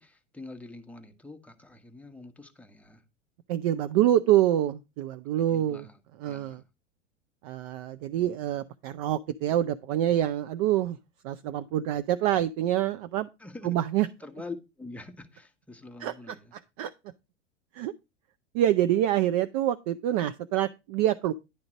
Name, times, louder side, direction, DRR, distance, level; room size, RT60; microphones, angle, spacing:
voice 1, 0.0-3.0 5.4-6.0 6.2-6.6 13.4-16.5, left 3 dB, 5° left, 0.9 m, -45 dB
voice 2, 3.5-5.9 6.2-6.6 7.4-11.0 11.2-13.3 13.6-14.1 16.0-16.4 16.8-16.9 17.7-17.9 18.5-21.3, right 12 dB, 35° right, 0.4 m, -26 dB
10.0 x 3.8 x 6.1 m
figure-of-eight pair, 90°, 37 cm